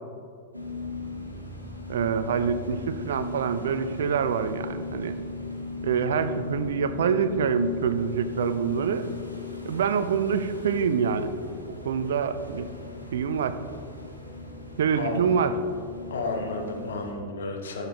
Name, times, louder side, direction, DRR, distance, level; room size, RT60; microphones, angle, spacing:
sound 1, 0.5-17.1, left 3 dB, 90° right, 1.2 m, -38 dB
voice 1, 1.9-5.2 5.8-9.1 9.6-11.3 11.8-12.7 13.1-13.6 14.8-15.5, right 6 dB, 60° right, 12 dB, 0.5 m, -26 dB
voice 2, 14.9-15.2 16.1-17.9, left 2 dB, 65° left, 2 dB, 1.4 m, -32 dB
15.0 x 6.6 x 3.0 m, 2.4 s
figure-of-eight pair, 90°, 0 cm